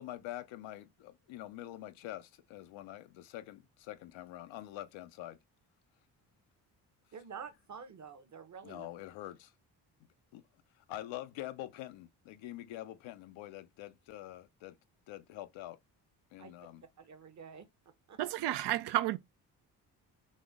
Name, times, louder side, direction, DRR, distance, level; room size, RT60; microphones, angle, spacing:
voice 1, 0.0-5.4 8.6-9.5 10.3-10.4 10.8-14.8 15.1-15.8 16.3-16.8, left 14 dB, 75° left, 0.7 m, -45 dB
voice 2, 7.1-8.9 16.4-16.5 17.0-17.7 18.1-18.2, right 6 dB, 35° right, 0.9 m, -48 dB
voice 3, 18.2-19.2, right 14 dB, 60° right, 0.5 m, -31 dB
4.2 x 3.0 x 3.5 m
supercardioid pair, 60°, 47 cm